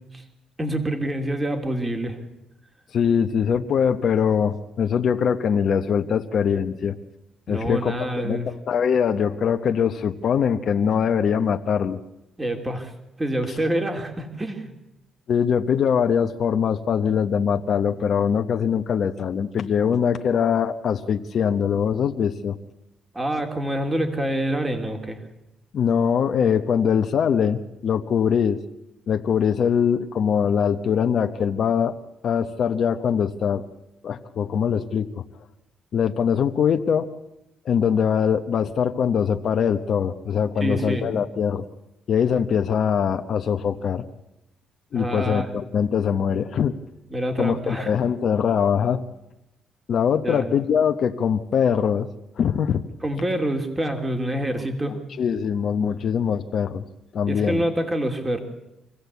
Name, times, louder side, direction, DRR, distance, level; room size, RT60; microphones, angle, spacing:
voice 1, 0.6-2.2 7.5-8.5 12.4-12.9 13.2-14.7 23.1-25.2 40.6-41.1 44.9-45.5 47.1-47.9 50.2-50.5 53.0-55.0 57.3-58.4, right 1 dB, 20° right, 4 dB, 3.0 m, -26 dB
voice 2, 2.9-7.0 7.5-7.9 8.2-12.0 15.3-22.6 25.7-28.6 29.1-32.0 32.2-33.6 34.0-35.2 35.9-37.1 37.6-41.6 42.1-44.0 44.9-46.7 47.4-49.0 49.9-52.1 52.4-52.8 54.9-56.8 57.1-57.6, left 7 dB, 60° left, 6 dB, 1.0 m, -22 dB
26.0 x 15.5 x 8.3 m, 0.92 s
cardioid pair, 90°, 0 cm